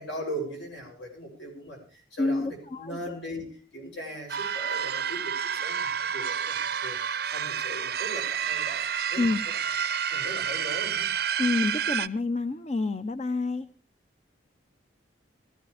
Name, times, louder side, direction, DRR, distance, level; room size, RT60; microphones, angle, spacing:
voice 1, 0.0-9.3 10.0-11.1, equal, 75° left, 1 dB, 7.8 m, -39 dB
voice 2, 2.2-3.0 9.2-9.4 11.4-13.7, left 3 dB, 35° left, 10 dB, 0.6 m, -28 dB
sound 1, 4.3-12.1, right 8 dB, 55° right, 0.6 m, -29 dB
21.0 x 15.0 x 3.4 m, 0.37 s
head